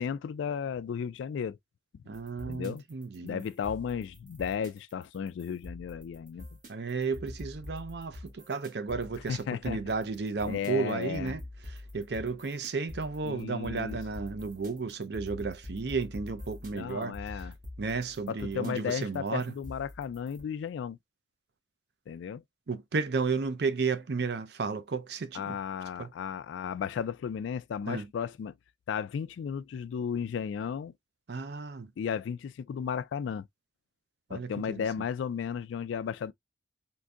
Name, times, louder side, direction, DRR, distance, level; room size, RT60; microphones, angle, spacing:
voice 1, 0.0-1.6 2.5-2.8 3.2-6.5 9.3-9.8 10.4-11.3 13.2-14.0 16.7-17.5 18.3-21.0 22.1-22.4 25.3-28.5 28.9-30.9 32.0-33.5 34.3-36.3, left 7 dB, 85° left, 0.3 m, -34 dB
sound 1, 2.1-20.4, left 1 dB, 45° right, 1.3 m, -45 dB
voice 2, 2.1-3.4 6.7-17.5 17.8-19.5 22.7-25.6 26.0-26.1 27.9-28.1 31.3-31.9 34.3-34.9, right 4 dB, 65° right, 0.5 m, -33 dB
3.7 x 2.6 x 2.3 m
head